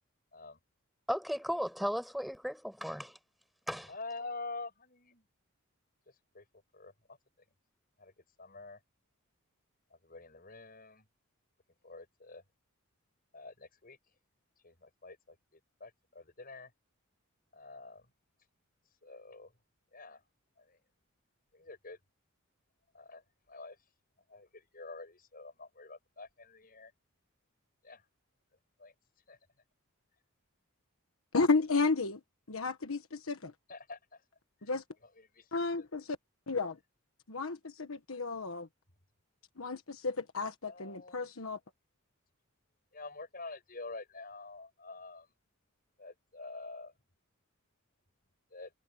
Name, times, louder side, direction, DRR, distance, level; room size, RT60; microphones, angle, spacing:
voice 1, 1.1-3.1 3.7-3.9, equal, ahead, 7.7 m, -35 dB
voice 2, 3.9-5.2 6.3-6.5 6.7-7.2 8.0-8.1 8.4-8.8 9.9-11.1 11.8-12.4 13.3-14.0 14.6-16.7 17.5-18.1 19.0-19.5 19.9-20.2 20.6-20.8 21.5-22.0 22.9-23.8 24.3-26.9 27.8-28.1 28.8-28.9 29.3-29.4 33.7-34.2 34.6-34.7 35.0-35.5 35.7-35.8 40.7-41.3 42.9-45.3 46.0-46.9 48.5-48.7, left 3 dB, 40° left, 7.0 m, -47 dB
voice 3, 31.3-32.2 32.5-33.5 34.7-34.8 35.5-36.2 36.5-36.8 37.3-38.7 39.6-41.6, left 4 dB, 75° left, 1.4 m, -32 dB
head